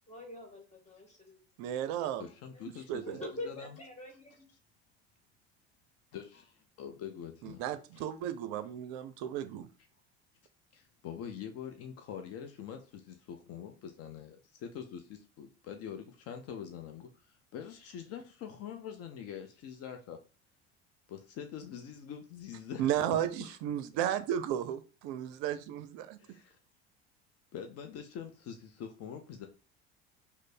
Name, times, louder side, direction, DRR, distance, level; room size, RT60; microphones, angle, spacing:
voice 1, 0.1-1.4 1.7-4.5, left 1 dB, 20° left, 1.5 m, -46 dB
voice 2, 1.6-2.3 2.9-3.0 7.4-9.7 22.8-26.2, right 10 dB, 60° right, 0.5 m, -34 dB
voice 3, 2.2-3.1 3.4-3.7 6.1-7.6 7.9-8.1 10.7-20.2 21.1-23.6 26.2-26.6 27.5-29.5, left 8 dB, 50° left, 0.5 m, -44 dB
3.2 x 2.0 x 4.1 m
hypercardioid pair, 70°, 32 cm